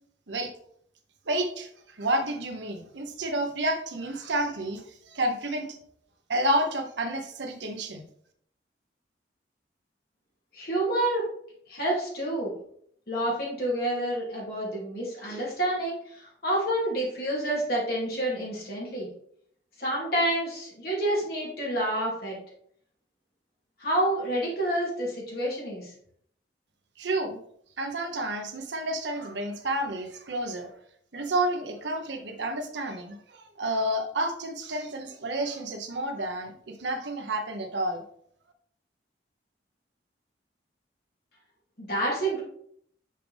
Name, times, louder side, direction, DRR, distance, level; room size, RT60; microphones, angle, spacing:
voice 1, 1.3-1.7 2.0-5.8 6.3-8.0 27.0-27.4 27.8-30.7 31.1-38.0, right 1 dB, 85° right, 4 dB, 0.9 m, -30 dB
voice 2, 10.5-11.3 11.7-12.5 13.1-19.1 19.8-22.4 23.8-25.9 41.8-42.4, right 1 dB, 55° left, -4 dB, 2.7 m, -28 dB
5.7 x 5.2 x 3.4 m, 0.65 s
head